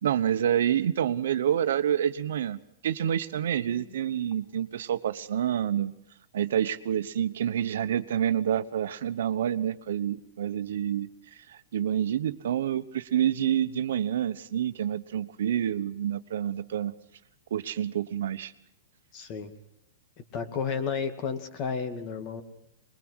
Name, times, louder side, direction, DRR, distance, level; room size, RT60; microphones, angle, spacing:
voice 1, 0.0-2.6 2.8-5.9 6.3-16.9 17.5-18.5, right 10 dB, 75° right, 11 dB, 1.0 m, -28 dB
voice 2, 19.1-19.5 20.3-22.4, left 6 dB, 40° left, 9 dB, 2.1 m, -32 dB
21.5 x 20.5 x 6.3 m, 0.78 s
hypercardioid pair, 145°, 0 cm